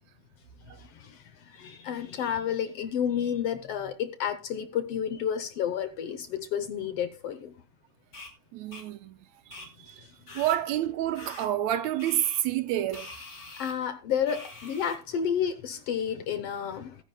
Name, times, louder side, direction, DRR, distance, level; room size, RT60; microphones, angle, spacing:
voice 1, 0.7-7.5 13.6-17.0, left 8 dB, 65° left, 1.6 m, -31 dB
sound 1, 8.1-8.3 8.7-8.8 9.5-9.7 10.3-10.6 11.1-11.5 12.0-12.4 12.9-13.7 14.3-15.0, left 2 dB, 30° left, 3.3 m, -44 dB
voice 2, 8.5-9.2 9.5-10.1 10.4-13.1, right 12 dB, 75° right, 2.0 m, -29 dB
19.5 x 10.0 x 2.2 m
omnidirectional pair, 3.4 m